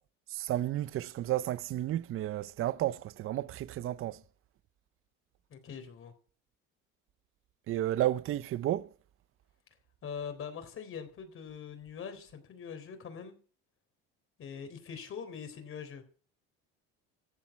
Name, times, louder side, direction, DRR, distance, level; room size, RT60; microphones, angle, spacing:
voice 1, 0.3-4.2 7.7-8.9, right 13 dB, 50° right, 0.7 m, -32 dB
voice 2, 5.5-6.1 10.0-13.4 14.4-16.0, left 7 dB, 45° left, 3.8 m, -43 dB
15.0 x 7.7 x 7.2 m
cardioid pair, 125°, 29 cm